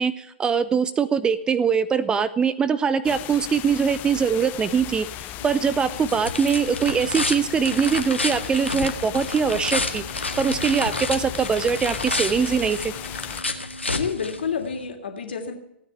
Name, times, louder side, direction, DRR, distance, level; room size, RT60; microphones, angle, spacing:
voice 1, 0.0-10.0 10.4-12.9, right 6 dB, 15° right, 15 dB, 0.6 m, -22 dB
sound 1, 3.0-13.4, left 16 dB, 25° left, 0.5 m, -36 dB
sound 2, 5.4-14.9, left 2 dB, 80° left, 1.8 m, -30 dB
voice 2, 13.9-15.5, left 6 dB, 60° left, 4 dB, 3.0 m, -29 dB
16.5 x 9.6 x 8.1 m, 0.82 s
figure-of-eight pair, 110°, 6 cm